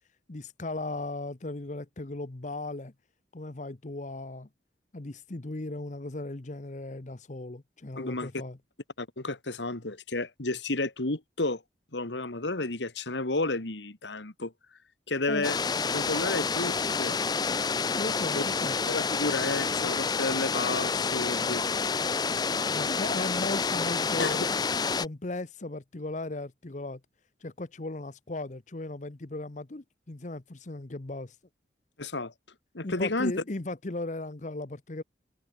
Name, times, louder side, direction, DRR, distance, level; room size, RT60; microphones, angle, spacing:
voice 1, 0.3-2.9 3.3-4.5 4.9-8.6 15.3-15.5 17.9-18.8 22.6-24.5 25.0-27.0 27.4-31.4 32.8-35.0, left 2 dB, 45° left, 0.9 m, -37 dB
voice 2, 8.0-8.3 9.0-11.6 11.9-14.5 15.1-15.6 15.9-17.2 18.4-18.5 18.9-21.6 24.2-24.3 32.0-32.3 32.7-33.3, left 2 dB, 85° left, 2.1 m, -31 dB
sound 1, 15.4-25.1, left 5 dB, 25° left, 0.5 m, -28 dB
head